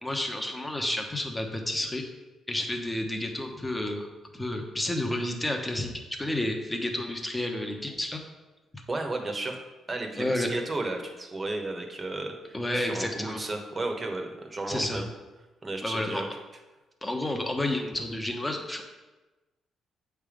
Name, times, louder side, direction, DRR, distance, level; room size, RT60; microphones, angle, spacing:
voice 1, 0.0-2.0 2.5-4.1 4.3-5.9 6.2-8.2 8.7-8.8 10.2-10.5 12.5-13.4 14.7-15.0 15.8-16.2 17.0-18.8, left 1 dB, 10° left, 3 dB, 1.1 m, -30 dB
voice 2, 8.9-9.6 9.9-15.1 15.6-16.3, right 2 dB, 25° right, 3 dB, 1.1 m, -33 dB
8.1 x 3.5 x 5.1 m, 1.1 s
cardioid pair, 90°, 0 cm